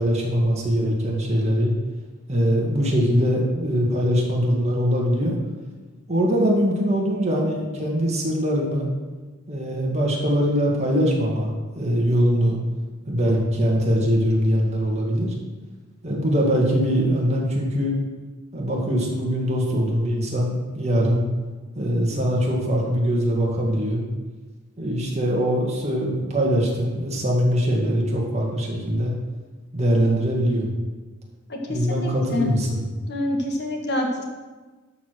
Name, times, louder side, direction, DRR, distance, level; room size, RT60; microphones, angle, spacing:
voice 1, 0.0-1.7 2.3-5.4 6.1-8.9 9.5-12.6 13.1-15.3 16.0-18.0 18.5-21.2 21.8-24.0 24.8-29.1 29.7-30.7 31.7-32.9, equal, 30° right, -2 dB, 2.1 m, -22 dB
voice 2, 31.5-32.5 33.1-34.2, left 1 dB, 55° left, 1 dB, 1.7 m, -27 dB
12.5 x 5.0 x 6.2 m, 1.3 s
head